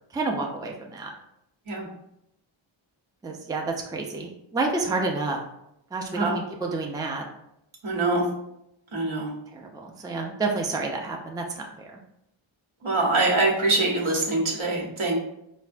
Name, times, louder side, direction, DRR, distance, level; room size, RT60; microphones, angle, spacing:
voice 1, 0.1-1.1 3.2-5.4 5.9-7.3 9.5-12.0, right 3 dB, 10° right, 1 dB, 0.3 m, -29 dB
voice 2, 7.8-8.2 8.9-9.3 12.8-15.2, right 2 dB, 75° right, -4 dB, 1.1 m, -24 dB
4.3 x 2.2 x 2.4 m, 0.81 s
wide cardioid pair, 80°, 48 cm